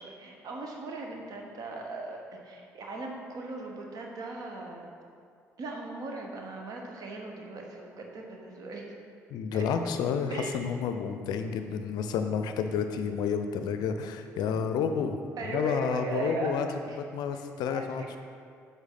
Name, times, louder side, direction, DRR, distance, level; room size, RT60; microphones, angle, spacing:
voice 1, 0.0-4.9 5.6-8.9 9.5-9.6 10.3-10.8 15.4-16.5 16.9-17.0 17.3-18.2, right 3 dB, 50° right, 1 dB, 1.1 m, -38 dB
voice 2, 9.3-16.7 17.0-18.2, left 6 dB, 60° left, 7 dB, 0.5 m, -30 dB
8.0 x 5.4 x 3.9 m, 2.4 s
figure-of-eight pair, 45°, 8 cm